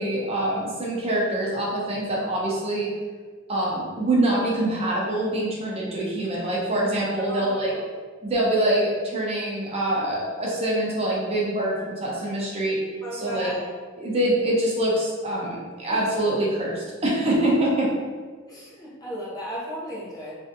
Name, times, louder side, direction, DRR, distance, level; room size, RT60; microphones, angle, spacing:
voice 1, 0.0-2.9 3.5-7.7 8.2-12.8 13.1-13.5 14.0-17.9, right 1 dB, 30° right, -4 dB, 0.6 m, -25 dB
voice 2, 7.3-7.9 13.0-13.6 15.9-16.0 18.5-20.3, equal, 20° left, -6 dB, 0.5 m, -35 dB
3.2 x 2.6 x 2.5 m, 1.5 s
head